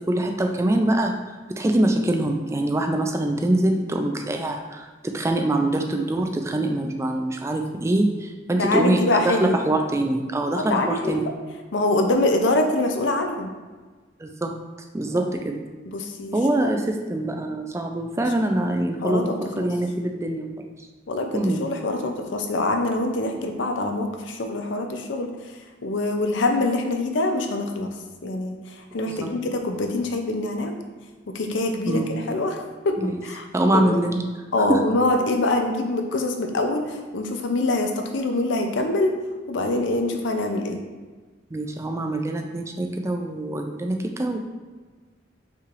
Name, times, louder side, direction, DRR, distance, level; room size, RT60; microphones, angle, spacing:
voice 1, 0.1-1.1 1.6-11.2 14.2-14.5 14.9-15.6 16.3-20.7 21.3-21.6 23.4-23.5 29.1-29.3 31.9-32.1 33.0-33.2 33.5-34.2 34.7-34.8 41.5-44.4, right 1 dB, 15° right, 4 dB, 0.3 m, -24 dB
voice 2, 8.6-9.6 10.5-11.3 11.7-13.5 15.1-15.2 15.9-16.3 16.6-16.7 19.0-19.7 21.1-25.3 25.8-27.9 28.2-30.8 31.3-34.0 34.5-39.2 39.5-40.8, left 2 dB, 75° left, 4 dB, 0.5 m, -24 dB
5.5 x 3.2 x 2.5 m, 1.4 s
head